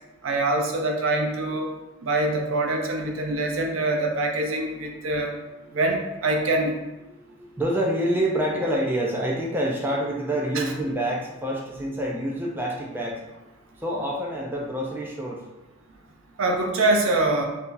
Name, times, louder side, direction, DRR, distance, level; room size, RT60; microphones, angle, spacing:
voice 1, 0.2-1.7 2.0-5.3 5.7-6.8 10.5-10.7 16.4-17.4, right 2 dB, 70° right, 2 dB, 0.5 m, -24 dB
voice 2, 7.4-13.2 13.8-15.4, right 1 dB, 10° right, -3 dB, 0.4 m, -27 dB
2.7 x 2.3 x 3.7 m, 1.0 s
head